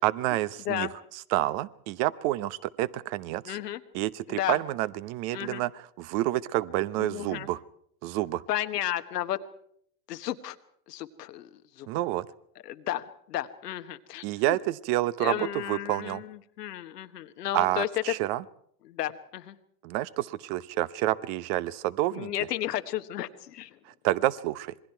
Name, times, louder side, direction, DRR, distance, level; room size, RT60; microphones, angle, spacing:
voice 1, 0.0-0.9 1.3-3.6 3.9-7.6 8.0-8.4 11.9-12.3 14.2-16.2 17.5-18.4 19.8-22.3 24.0-24.7, right 16 dB, 60° right, 17 dB, 1.0 m, -28 dB
voice 2, 3.4-3.8 4.3-4.6 5.3-5.6 7.0-7.5 8.5-9.4 10.1-10.6 10.9-11.5 11.8-11.9 12.6-14.6 15.2-17.9 18.8-19.5 22.1-23.7, left 13 dB, 85° left, 10 dB, 1.3 m, -33 dB
27.0 x 21.5 x 4.6 m, 0.66 s
hypercardioid pair, 90°, 46 cm